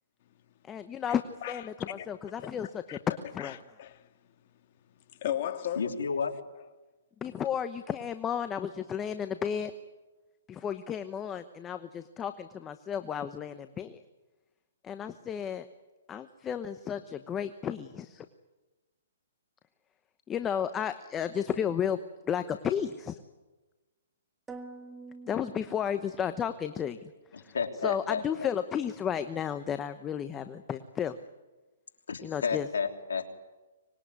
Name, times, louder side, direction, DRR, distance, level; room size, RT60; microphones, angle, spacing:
voice 1, 0.7-1.2 1.5-1.7 2.1-3.6 7.2-9.7 10.5-14.0 14.8-15.7 16.1-18.2 20.3-22.0 22.2-23.2 25.3-27.0 27.3-27.5 27.8-31.2 32.2-32.7, left 8 dB, 15° left, 1.0 m, -33 dB
voice 2, 2.9-4.3 4.9-5.9, left 11 dB, 45° left, 2.1 m, -37 dB
voice 3, 5.8-6.4 27.3-28.5 32.1-33.3, left 5 dB, 80° left, 3.2 m, -32 dB
sound 1, 24.5-26.4, right 3 dB, 10° right, 1.9 m, -46 dB
24.5 x 20.5 x 9.6 m
hypercardioid pair, 145°, 0 cm